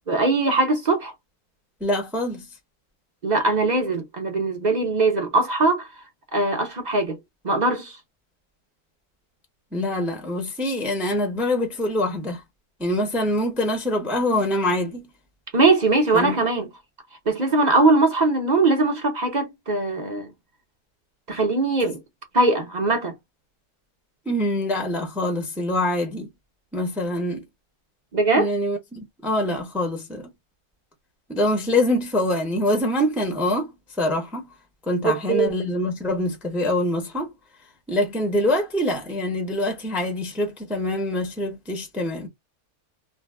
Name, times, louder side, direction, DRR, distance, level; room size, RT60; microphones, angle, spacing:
voice 1, 0.1-1.1 3.2-5.9 6.3-7.2 7.4-8.0 15.5-16.7 17.3-20.3 21.3-22.0 22.3-23.1 28.1-28.5 35.0-35.5, right 3 dB, 45° right, 0.6 m, -21 dB
voice 2, 1.8-2.5 9.7-12.4 12.8-15.1 16.1-16.4 21.8-21.9 24.3-26.3 26.7-27.4 28.4-30.2 31.3-34.5 34.8-37.3 37.9-42.3, left 1 dB, ahead, 0.6 m, -24 dB
2.6 x 2.2 x 3.3 m
omnidirectional pair, 1.6 m